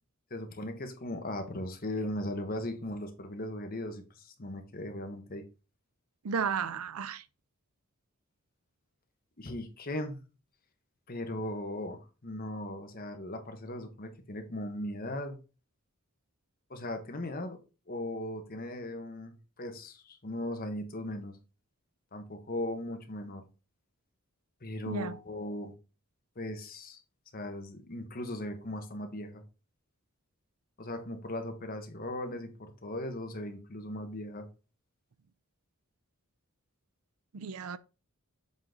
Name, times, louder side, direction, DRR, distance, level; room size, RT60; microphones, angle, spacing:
voice 1, 0.3-5.4 9.4-10.2 11.1-15.4 16.7-17.6 17.9-21.3 22.1-23.4 24.6-25.7 26.4-27.0 27.3-29.4 30.8-34.5, left 1 dB, 40° left, 1.1 m, -38 dB
voice 2, 6.2-7.2 24.9-25.2 37.3-37.8, right 6 dB, 75° right, 0.5 m, -33 dB
7.3 x 3.9 x 3.8 m
head